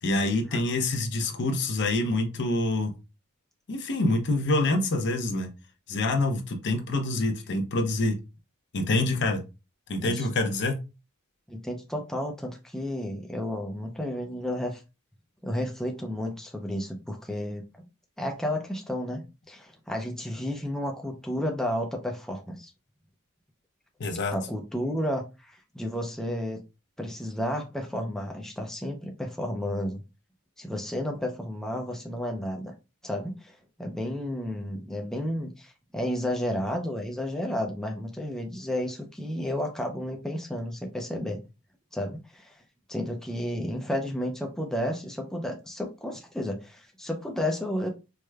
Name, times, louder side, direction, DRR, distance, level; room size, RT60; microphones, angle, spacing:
voice 1, 0.0-2.9 3.7-5.5 5.9-8.1 8.7-9.4 9.9-10.8 24.0-24.3, left 2 dB, 50° left, 5 dB, 0.6 m, -26 dB
voice 2, 11.5-14.8 15.4-17.6 18.2-22.7 24.3-26.6 27.0-30.0 30.6-32.7 33.0-41.4 41.9-42.6 42.9-47.9, left 1 dB, ahead, 1 dB, 0.4 m, -32 dB
4.7 x 2.1 x 2.2 m, 0.28 s
head